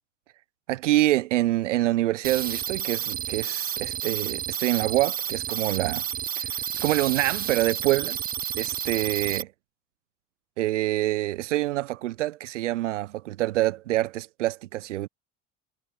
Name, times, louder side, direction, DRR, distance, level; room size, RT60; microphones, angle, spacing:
voice 1, 0.7-6.0 6.4-6.5 6.8-8.2 8.6-9.4 10.6-15.1, right 15 dB, 70° right, 1.3 m, -26 dB
sound 1, 2.2-9.4, right 10 dB, 25° right, 0.6 m, -31 dB
figure-of-eight pair, 65°, 38 cm